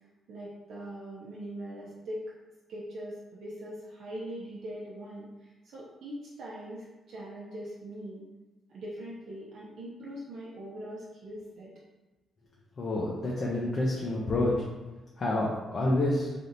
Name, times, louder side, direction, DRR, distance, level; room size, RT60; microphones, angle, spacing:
voice 1, 0.3-2.2 2.7-8.3 8.7-11.7, right 1 dB, 65° right, -6 dB, 0.7 m, -41 dB
voice 2, 12.8-14.5 15.2-16.3, left 1 dB, 40° left, -4 dB, 0.7 m, -28 dB
3.4 x 2.8 x 3.9 m, 1.1 s
cardioid pair, 135°, 0 cm